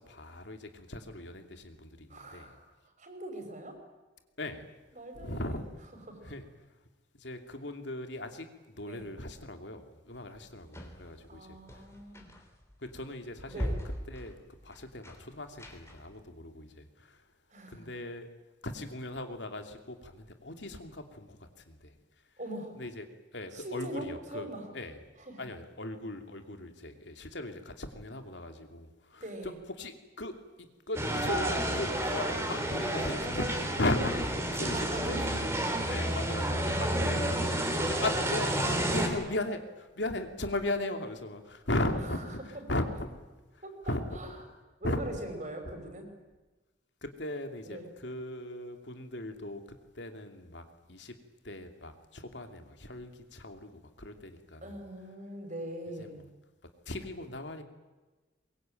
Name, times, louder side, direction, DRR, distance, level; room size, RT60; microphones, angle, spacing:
voice 1, 0.0-2.5 4.4-4.7 5.2-5.7 6.2-6.4 7.2-11.5 12.9-13.7 14.1-14.3 14.6-17.2 17.7-18.3 18.6-21.4 21.7-21.9 22.8-23.1 23.3-24.5 24.7-25.0 25.4-29.5 29.8-29.9 30.2-30.3 30.9-35.2 35.9-37.3 37.6-42.4 42.7-42.9 43.9-44.0 44.8-45.0 47.0-49.6 49.9-50.6 50.9-51.1 51.4-53.7 54.0-54.8 56.0-56.3 56.9-57.6, left 1 dB, 70° left, 6 dB, 2.7 m, -37 dB
voice 2, 2.1-3.8 4.9-5.6 5.9-6.3 8.8-9.1 11.3-12.3 13.5-13.8 17.5-17.9 22.4-22.9 23.5-24.7 25.2-25.5 29.2-29.6 32.0-32.4 34.7-35.2 36.8-37.1 41.9-42.6 43.6-44.4 44.8-46.1 47.6-47.9 54.6-56.2, right 1 dB, 40° right, 5 dB, 5.4 m, -42 dB
sound 1, 10.1-16.2, equal, 15° left, 3.4 m, -41 dB
sound 2, 31.0-39.1, right 1 dB, 15° right, 3.6 m, -30 dB
23.0 x 22.5 x 9.1 m, 1.2 s
head